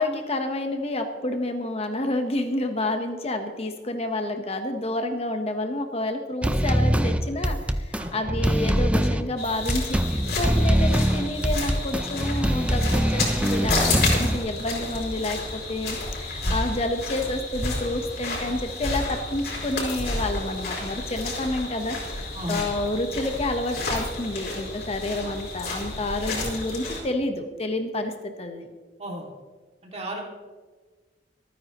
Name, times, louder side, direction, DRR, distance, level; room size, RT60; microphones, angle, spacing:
voice 1, 0.0-22.0 22.5-28.7, left 1 dB, 35° left, 5 dB, 1.1 m, -29 dB
sound 1, 6.4-14.4, equal, 5° right, 0.5 m, -23 dB
sound 2, 9.4-27.0, left 2 dB, 65° left, 4.7 m, -31 dB
voice 2, 22.3-22.7 29.0-29.3 29.9-30.2, equal, 40° right, 0 dB, 2.4 m, -33 dB
26.0 x 9.5 x 3.0 m, 1.4 s
head